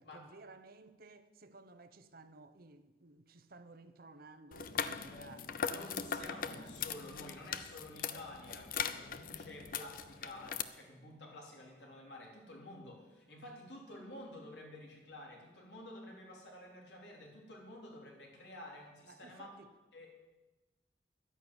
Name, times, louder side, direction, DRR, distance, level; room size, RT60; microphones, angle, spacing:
voice 1, 0.0-5.5 6.0-6.7 19.0-19.7, right 2 dB, 55° right, 0.9 m, -56 dB
sound 1, 4.5-10.6, left 7 dB, 55° left, 0.7 m, -40 dB
voice 2, 5.6-19.5 19.9-20.1, left 1 dB, 75° left, 4.0 m, -51 dB
11.5 x 10.5 x 9.0 m
head